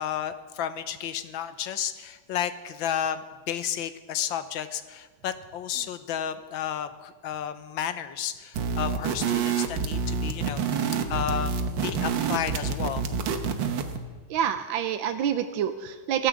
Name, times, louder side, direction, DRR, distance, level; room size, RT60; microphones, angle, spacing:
voice 1, 0.0-13.0, left 9 dB, 80° left, 11 dB, 1.6 m, -32 dB
sound 1, 8.5-14.0, right 5 dB, 70° right, 1.7 m, -28 dB
voice 2, 14.3-16.3, right 9 dB, 90° right, 9 dB, 1.5 m, -27 dB
16.0 x 10.5 x 7.6 m, 1.4 s
omnidirectional pair, 2.1 m